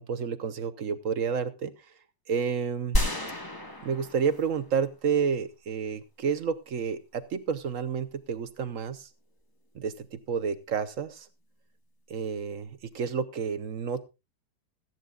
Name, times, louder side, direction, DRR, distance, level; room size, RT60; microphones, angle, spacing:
voice 1, 0.0-1.7 2.3-3.0 3.8-9.1 9.7-11.3 12.1-14.0, right 6 dB, 55° right, 12 dB, 1.0 m, -30 dB
sound 1, 2.9-4.9 5.2-5.3, equal, 10° left, 1.4 m, -30 dB
17.5 x 13.5 x 2.4 m, 0.26 s
omnidirectional pair, 2.1 m